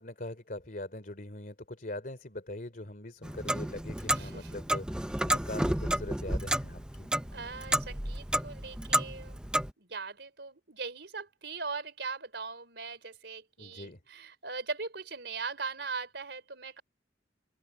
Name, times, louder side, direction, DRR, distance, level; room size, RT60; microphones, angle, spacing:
voice 1, 0.0-7.1 13.6-14.0, left 1 dB, 50° left, 3.1 m, -42 dB
Clock, 3.2-9.7, right 1 dB, 5° right, 0.6 m, -31 dB
voice 2, 4.1-4.6 7.3-9.4 9.8-16.8, right 4 dB, 70° right, 4.1 m, -40 dB
head